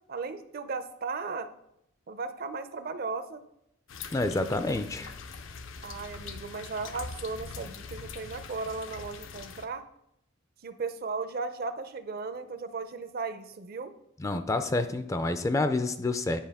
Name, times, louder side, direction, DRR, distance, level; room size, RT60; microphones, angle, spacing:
voice 1, 0.1-1.5 2.1-3.4 5.8-9.8 10.6-13.9, right 4 dB, 50° right, 11 dB, 0.5 m, -36 dB
sound 1, 3.9-9.7, left 5 dB, 75° left, 0.6 m, -43 dB
voice 2, 4.1-5.1 14.2-16.4, left 2 dB, 15° left, 9 dB, 0.3 m, -28 dB
9.8 x 5.0 x 3.5 m, 0.79 s
head